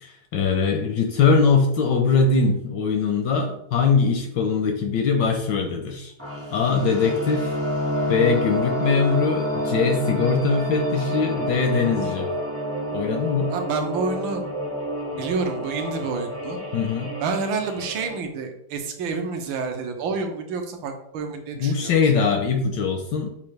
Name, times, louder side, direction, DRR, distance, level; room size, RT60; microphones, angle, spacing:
voice 1, 0.0-6.1 6.5-7.5 8.1-12.3 12.9-13.5 16.7-17.1 21.6-23.3, left 5 dB, 75° left, 4 dB, 1.1 m, -21 dB
sound 1, 6.2-18.2, equal, 15° right, 0.4 m, -28 dB
voice 2, 13.5-14.4 15.1-16.6 17.2-22.2, right 4 dB, 70° right, 4 dB, 1.4 m, -29 dB
7.0 x 2.4 x 3.2 m, 0.73 s
omnidirectional pair, 2.4 m